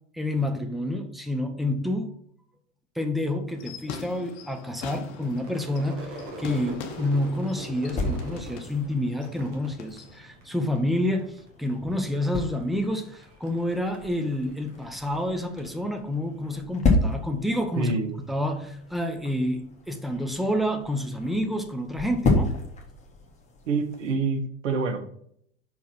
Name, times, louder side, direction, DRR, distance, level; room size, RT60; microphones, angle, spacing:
voice 1, 0.1-2.1 3.0-17.9 18.3-22.6, left 1 dB, ahead, 0.5 m, -28 dB
sound 1, 3.5-10.2, left 6 dB, 40° left, 1.0 m, -43 dB
sound 2, 5.3-24.1, left 2 dB, 15° left, 1.5 m, -33 dB
Crowd / Fireworks, 5.4-10.8 11.1-11.7 12.0-15.6, right 1 dB, 45° right, 1.8 m, -42 dB
voice 2, 17.8-18.2 23.7-25.1, right 4 dB, 70° right, 1.1 m, -27 dB
5.9 x 4.6 x 4.5 m
figure-of-eight pair, 85°, 39 cm